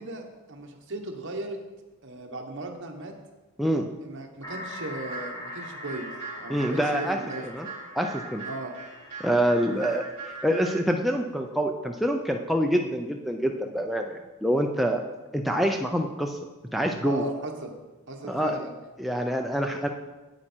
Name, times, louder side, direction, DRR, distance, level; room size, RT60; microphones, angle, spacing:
voice 1, 0.0-1.6 2.0-3.1 4.0-6.1 6.4-7.4 8.5-8.7 9.6-9.9 17.0-17.8 18.1-18.7, right 2 dB, 55° right, 2 dB, 1.3 m, -37 dB
sound 1, 4.4-10.1, left 1 dB, 15° left, 1.1 m, -42 dB
sound 2, 5.0-10.9, right 4 dB, 35° right, 3.7 m, -41 dB
voice 2, 6.5-7.2 7.5-7.7 7.9-8.4 9.2-15.0 15.3-16.4 16.7-17.3 18.3-18.6 19.0-19.9, equal, ahead, 2 dB, 0.4 m, -26 dB
8.7 x 8.4 x 4.5 m, 1.2 s
head